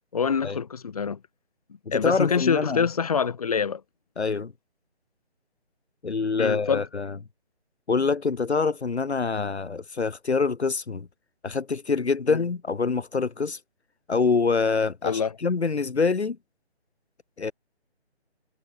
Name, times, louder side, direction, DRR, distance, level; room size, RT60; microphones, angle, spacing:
voice 1, 0.1-1.2 1.9-3.8 6.4-6.8 12.3-12.4 15.0-15.3, left 6 dB, 35° left, 1.5 m, -25 dB
voice 2, 1.9-2.8 4.2-4.5 6.0-7.2 7.9-11.1 11.4-13.6 14.1-16.4 17.4-17.5, left 4 dB, 75° left, 0.9 m, -25 dB
figure-of-eight pair, 150°, 33 cm